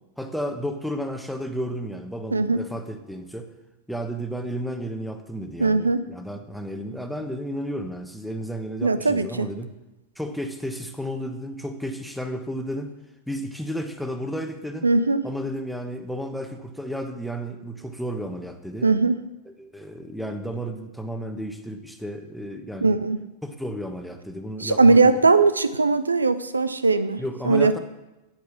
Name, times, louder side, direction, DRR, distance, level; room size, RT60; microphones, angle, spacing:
voice 1, 0.2-3.5 3.9-9.7 10.2-12.9 13.3-14.9 15.2-18.9 19.5-23.0 23.4-25.0 27.2-27.8, equal, ahead, 5 dB, 1.1 m, -32 dB
voice 2, 2.3-2.6 5.6-6.0 8.8-9.5 14.8-15.3 18.8-19.2 22.8-23.2 24.6-27.8, right 3 dB, 80° right, 13 dB, 0.5 m, -20 dB
8.8 x 8.1 x 7.0 m, 1.0 s
figure-of-eight pair, 90°, 0 cm